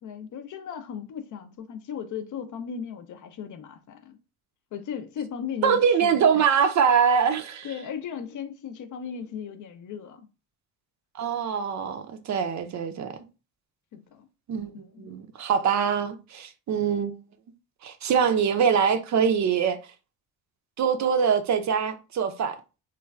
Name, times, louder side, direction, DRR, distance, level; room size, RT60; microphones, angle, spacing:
voice 1, 0.0-4.2 4.7-6.4 7.6-10.3 13.9-14.3 14.7-15.1, left 7 dB, 50° left, 0.5 m, -37 dB
voice 2, 5.6-7.7 11.1-13.1 14.5-14.7 15.0-17.1 17.8-19.8 20.8-22.6, right 7 dB, 45° right, 0.4 m, -23 dB
3.1 x 2.2 x 2.3 m
supercardioid pair, 60°, 42 cm